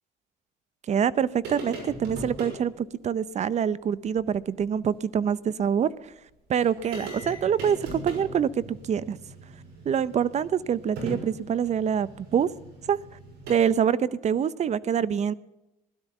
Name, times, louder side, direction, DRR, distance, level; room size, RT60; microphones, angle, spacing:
voice 1, 0.9-5.9 6.5-9.2 9.8-12.5 12.9-13.0 13.5-15.3, right 8 dB, 40° right, 19 dB, 0.7 m, -25 dB
sound 1, 1.4-2.6 4.2-4.3 4.6-4.7 6.3-6.4 6.6-13.5, right 2 dB, 85° right, 6.0 m, -40 dB
16.5 x 12.5 x 7.1 m, 0.95 s
cardioid pair, 110°, 17 cm